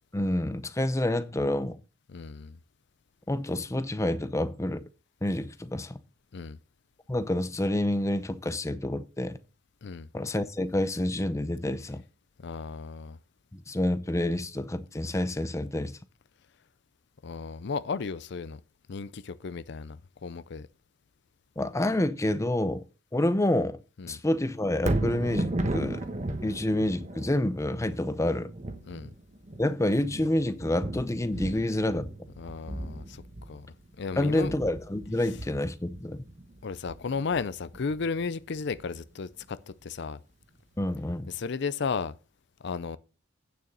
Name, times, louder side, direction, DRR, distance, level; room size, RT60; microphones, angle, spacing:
voice 1, 0.1-1.8 3.3-4.9 5.2-6.0 7.1-9.4 10.1-12.0 13.5-16.0 21.6-22.8 23.1-23.8 24.1-26.1 26.4-28.5 29.6-32.1 34.2-36.2 40.8-41.3, left 1 dB, 15° left, 0.6 m, -28 dB
voice 2, 2.1-2.6 6.3-6.6 9.8-10.1 12.4-13.2 17.2-18.6 18.9-20.7 24.0-24.2 28.8-29.1 32.4-33.7 34.0-34.5 35.2-35.3 36.6-40.2 41.3-42.2 42.6-43.0, left 5 dB, 60° left, 0.5 m, -34 dB
Thunder, 24.7-38.9 39.4-39.5, right 1 dB, 35° right, 1.2 m, -36 dB
9.0 x 6.8 x 5.5 m
head